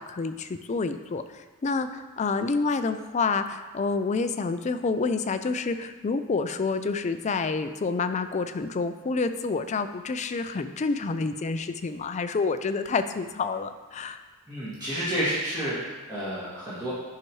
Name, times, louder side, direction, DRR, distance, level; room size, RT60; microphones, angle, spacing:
voice 1, 0.0-14.2, left 4 dB, 30° left, 9 dB, 0.4 m, -28 dB
voice 2, 14.5-16.9, equal, 20° right, -10 dB, 2.1 m, -30 dB
10.5 x 5.8 x 3.1 m, 1.2 s
head